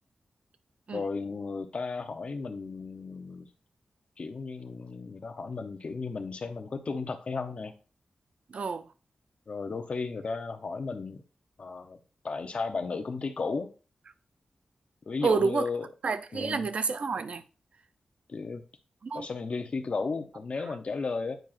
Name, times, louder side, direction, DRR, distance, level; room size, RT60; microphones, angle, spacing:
voice 1, 0.9-3.5 4.2-7.7 9.5-11.2 11.6-12.0 12.2-13.7 15.0-15.9 16.3-16.7 18.3-18.6 19.1-21.4, left 4 dB, 55° left, 0.8 m, -34 dB
voice 2, 8.5-8.9 15.2-15.7 16.0-17.4 19.0-19.3, right 4 dB, 65° right, 0.5 m, -28 dB
8.9 x 4.8 x 2.5 m
wide cardioid pair, 85°, 2 cm